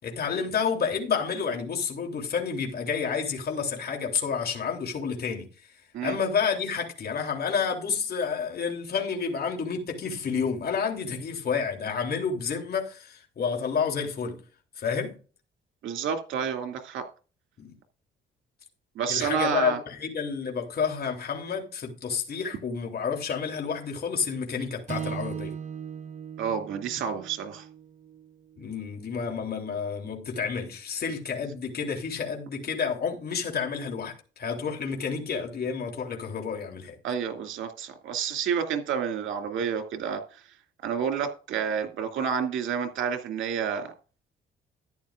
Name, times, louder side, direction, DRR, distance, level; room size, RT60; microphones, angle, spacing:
voice 1, 0.0-5.5 6.0-14.4 14.8-15.2 17.6-17.7 19.1-25.6 28.6-37.0, left 6 dB, 50° left, 3.2 m, -30 dB
voice 2, 15.8-17.0 19.0-19.8 26.4-27.7 37.0-40.2 40.8-43.9, right 7 dB, 80° right, 2.4 m, -29 dB
Strum, 24.9-29.2, right 7 dB, 40° right, 0.8 m, -39 dB
13.5 x 10.5 x 2.5 m
cardioid pair, 90°, 20 cm